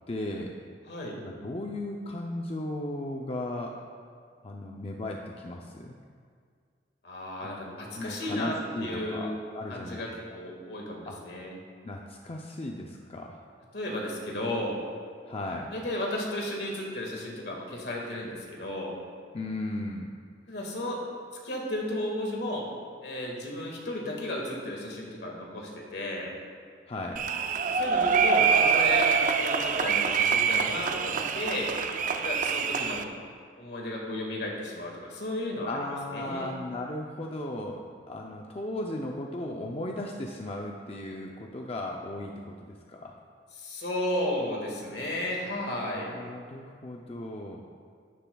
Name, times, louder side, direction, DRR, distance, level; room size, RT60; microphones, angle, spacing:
voice 1, 0.1-0.6 1.2-3.8 4.4-6.0 7.4-7.5 8.0-10.0 11.0-11.2 11.8-13.4 15.3-15.7 19.3-20.1 26.9-27.3 35.7-43.1 45.9-47.6, left 1 dB, 35° left, 0 dB, 0.6 m, -36 dB
voice 2, 0.8-1.2 7.0-9.3 9.7-11.5 13.7-14.8 15.7-19.0 20.5-21.0 21.4-22.7 23.0-26.3 27.7-29.1 29.4-31.7 32.1-33.1 33.6-35.8 36.1-36.5 43.6-46.1, left 1 dB, 70° left, -1 dB, 1.8 m, -34 dB
sound 1, 27.2-33.0, right 6 dB, 45° right, 0.5 m, -25 dB
12.0 x 10.0 x 2.3 m, 2.1 s
head